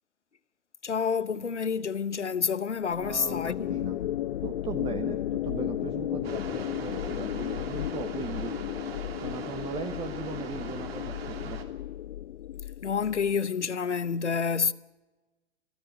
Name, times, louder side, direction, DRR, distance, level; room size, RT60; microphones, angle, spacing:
voice 1, 0.8-3.7 12.8-14.7, left 6 dB, 90° left, 0.9 m, -28 dB
sound 1, 2.9-13.4, left 12 dB, 55° left, 0.7 m, -34 dB
voice 2, 3.0-4.0 4.4-8.6 9.2-11.6, right 7 dB, 15° right, 1.1 m, -38 dB
sound 2, 6.2-11.6, right 7 dB, 60° right, 2.8 m, -42 dB
27.5 x 10.0 x 9.7 m
figure-of-eight pair, 115°, 34 cm